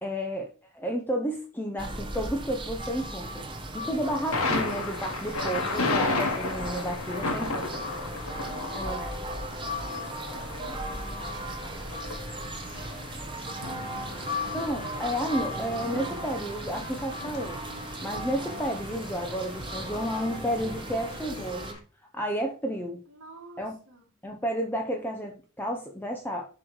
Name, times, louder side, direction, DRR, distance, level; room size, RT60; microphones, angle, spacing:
voice 1, 0.0-3.5 3.7-7.8 8.7-9.1 14.5-17.6 18.0-21.8 22.1-23.0 23.6-23.7 24.2-26.5, equal, 10° left, 2 dB, 0.8 m, -32 dB
sound 1, 1.8-21.7, equal, 25° right, 1.1 m, -37 dB
Thunder, 4.3-21.8, left 3 dB, 75° left, 1.4 m, -35 dB
voice 2, 8.5-9.0 9.7-13.5 23.1-24.0, right 2 dB, 65° right, -3 dB, 1.9 m, -50 dB
7.3 x 3.3 x 6.2 m, 0.39 s
head